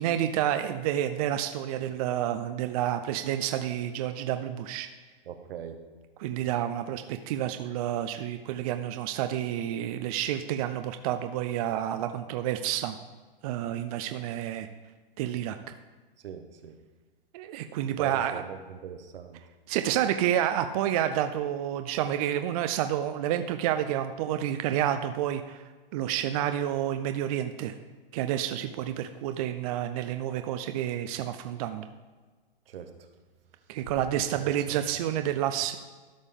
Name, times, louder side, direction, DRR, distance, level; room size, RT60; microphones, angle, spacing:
voice 1, 0.0-4.9 6.2-13.0 13.4-14.7 15.2-15.6 17.3-18.3 19.7-25.6 25.9-27.8 28.1-31.8 33.7-35.8, right 11 dB, 40° right, 8 dB, 0.4 m, -29 dB
voice 2, 5.2-5.8 16.2-16.7 18.0-19.4 32.7-33.1 34.1-34.9, right 8 dB, 75° right, 7 dB, 1.1 m, -41 dB
12.5 x 5.2 x 3.6 m, 1.4 s
hypercardioid pair, 140°, 29 cm